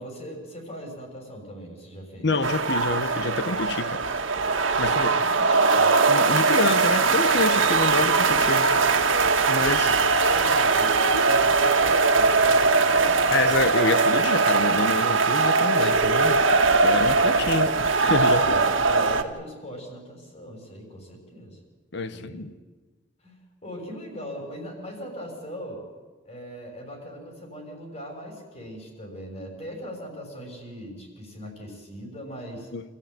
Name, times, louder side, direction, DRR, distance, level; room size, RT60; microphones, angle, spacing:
voice 1, 0.0-2.3 4.9-5.9 9.7-10.0 10.3-13.4 18.2-21.6 22.1-22.5 23.2-25.8 26.2-32.7, equal, 35° left, 6.7 m, -40 dB
voice 2, 2.2-4.0 4.8-5.1 6.1-8.7 9.5-9.9 13.3-16.4 16.8-18.6 21.9-22.5 32.7-32.8, left 3 dB, 60° left, 1.2 m, -27 dB
sound 1, 2.4-19.2, right 4 dB, 85° right, 1.7 m, -21 dB
27.0 x 15.0 x 9.5 m
head